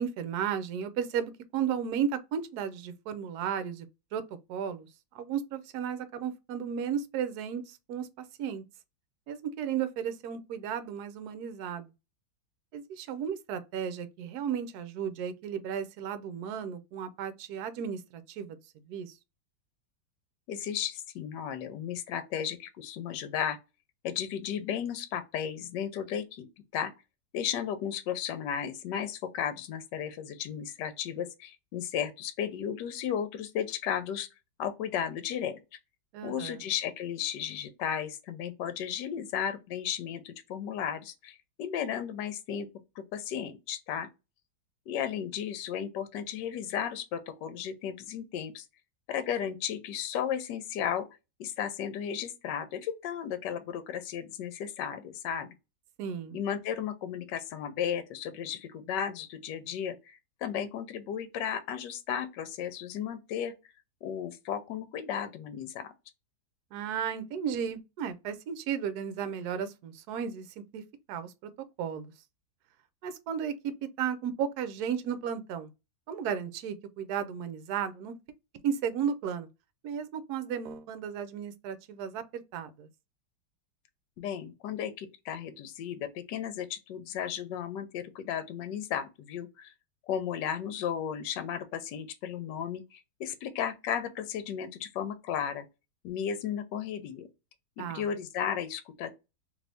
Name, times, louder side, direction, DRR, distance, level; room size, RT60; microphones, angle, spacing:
voice 1, 0.0-3.9 4.1-4.2 4.5-4.9 5.1-8.6 9.3-11.9 12.7-18.6 18.9-19.1 36.1-36.6 56.0-56.4 66.7-70.8 71.1-71.3 71.8-72.1 73.0-75.7 76.1-78.1 78.6-79.5 79.8-82.9 97.8-98.0, right 8 dB, 70° right, 1.0 m, -34 dB
voice 2, 20.5-23.6 24.0-26.5 26.7-26.9 27.3-34.3 34.6-35.6 36.2-42.7 43.0-44.1 44.9-48.7 49.1-51.1 51.4-55.5 56.3-63.5 64.0-65.9 84.2-89.7 90.1-95.6 96.0-97.3 97.8-99.2, left 8 dB, 75° left, 1.2 m, -34 dB
3.0 x 2.6 x 3.3 m
omnidirectional pair, 1.9 m